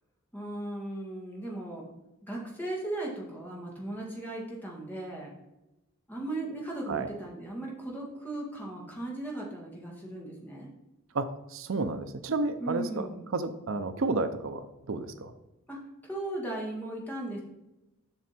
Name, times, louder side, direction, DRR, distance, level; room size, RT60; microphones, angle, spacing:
voice 1, 0.3-1.9 2.2-5.3 6.1-10.7 12.6-13.2 15.7-17.4, right 1 dB, 10° left, -3 dB, 2.0 m, -37 dB
voice 2, 11.1-13.1 13.3-15.3, right 3 dB, 65° right, 10 dB, 0.5 m, -31 dB
7.7 x 6.2 x 4.3 m, 0.97 s
head